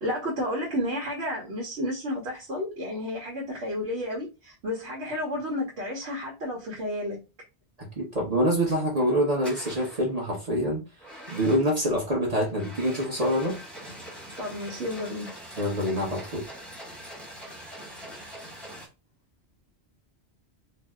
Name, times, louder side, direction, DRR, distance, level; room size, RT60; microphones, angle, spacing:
voice 1, 0.0-7.2 14.4-15.3, left 1 dB, 75° right, 1.1 m, -31 dB
voice 2, 7.8-10.8 11.3-13.6 15.6-16.5, equal, 40° right, 0.9 m, -26 dB
sound 1, 8.8-9.0 9.4-10.1 11.0-11.9 12.5-18.9, equal, ahead, 0.8 m, -43 dB
2.7 x 2.1 x 3.4 m
omnidirectional pair, 1.1 m